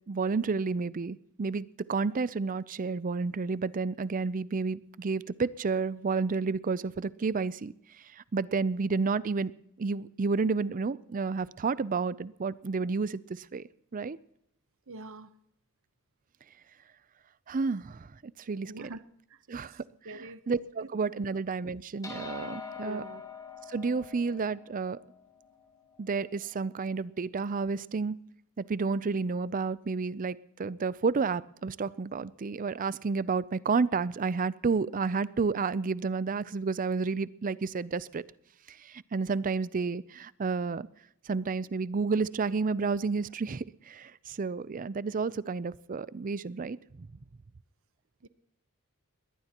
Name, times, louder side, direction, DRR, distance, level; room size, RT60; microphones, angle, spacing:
voice 1, 0.1-7.7 8.1-9.5 9.8-14.2 17.5-18.9 19.5-19.8 20.1-23.0 23.7-25.0 26.0-28.2 28.6-38.2 38.7-40.9 41.3-47.1, right 4 dB, 35° right, 0.5 m, -31 dB
voice 2, 14.9-15.4 18.7-19.0 19.3-19.4 20.0-20.9 21.2-21.3 22.8-23.2 48.2-48.3, right 2 dB, 65° right, 0.9 m, -45 dB
sound 1, 22.0-26.7, left 6 dB, 15° left, 4.3 m, -45 dB
21.5 x 18.0 x 2.9 m
head